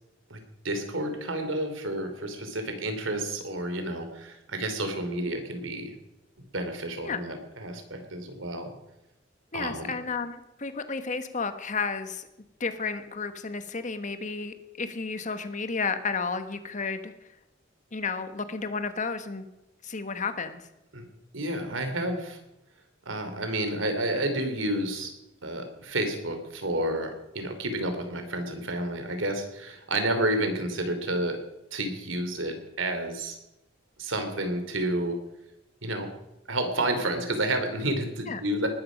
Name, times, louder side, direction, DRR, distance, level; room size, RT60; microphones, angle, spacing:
voice 1, 0.6-5.9 6.5-8.7 9.5-9.9 20.9-21.0 21.3-22.4 23.0-25.1 25.4-31.4 31.7-33.4 34.0-35.2 35.8-36.1 36.5-38.7, right 1 dB, 85° right, 6 dB, 3.1 m, -30 dB
voice 2, 9.5-12.3 12.6-17.1 17.9-19.5 19.8-20.6 38.3-38.4, left 4 dB, 40° left, 10 dB, 1.3 m, -32 dB
19.5 x 12.5 x 5.2 m, 0.93 s
head